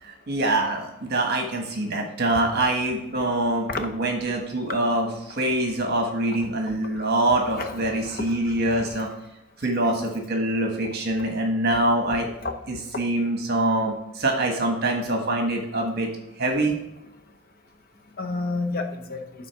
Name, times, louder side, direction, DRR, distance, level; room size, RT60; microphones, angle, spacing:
voice 1, 0.0-9.1 9.6-12.3 12.7-16.1 16.4-16.8, right 1 dB, 45° right, 3 dB, 1.4 m, -24 dB
voice 2, 7.5-8.2 8.9-9.1 12.4-12.5 18.2-19.2, left 3 dB, 40° left, 5 dB, 0.8 m, -30 dB
9.9 x 4.1 x 5.9 m, 0.85 s
head